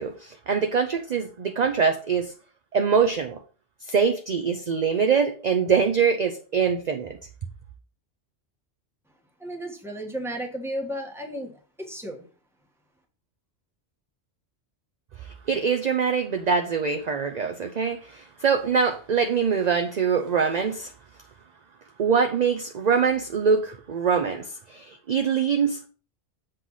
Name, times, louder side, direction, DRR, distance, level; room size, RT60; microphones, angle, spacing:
voice 1, 0.0-2.3 2.7-3.4 3.9-7.2 15.2-20.9 22.0-25.9, right 6 dB, 45° right, 6 dB, 0.7 m, -24 dB
voice 2, 9.4-12.2, equal, ahead, 0 dB, 1.4 m, -34 dB
7.6 x 3.3 x 5.6 m, 0.38 s
omnidirectional pair, 1.1 m